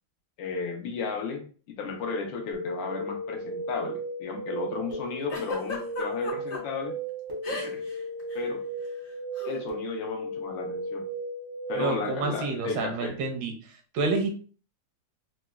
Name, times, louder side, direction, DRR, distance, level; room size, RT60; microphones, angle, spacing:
voice 1, 0.4-1.4 1.8-6.9 7.5-7.8 8.3-8.6 9.4-11.0 11.7-13.2, left 5 dB, 80° left, 3 dB, 1.4 m, -34 dB
sound 1, 2.5-12.1, right 1 dB, 45° right, 0.6 m, -35 dB
Giggle, 5.3-6.6 7.4-8.0 8.2-8.4 9.4-9.6, left 2 dB, 65° left, 1.6 m, -34 dB
voice 2, 11.7-13.5 13.9-14.3, right 3 dB, 80° right, 4 dB, 1.3 m, -28 dB
4.0 x 2.1 x 2.2 m, 0.40 s
omnidirectional pair, 2.0 m